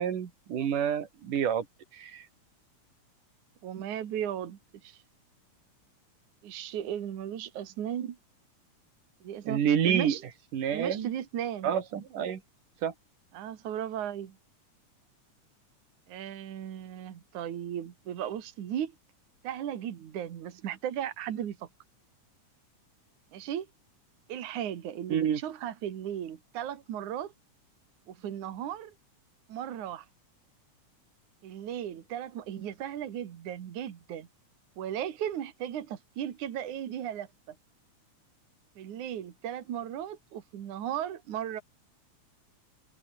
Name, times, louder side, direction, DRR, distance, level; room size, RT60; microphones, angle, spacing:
voice 1, 0.0-1.7 2.0-2.2 9.5-10.2 10.5-11.1 11.6-12.4 12.8-12.9 25.1-25.4, right 8 dB, 85° right, 4.0 m, -28 dB
voice 2, 3.6-5.0 6.4-8.2 9.2-9.6 9.8-10.2 10.7-11.8 13.3-14.4 16.1-18.9 19.4-21.7 23.3-23.7 24.3-27.3 28.1-28.9 29.5-30.1 31.4-34.3 34.8-37.6 38.8-41.6, right 10 dB, 70° right, 3.3 m, -36 dB
omnidirectional pair, 3.6 m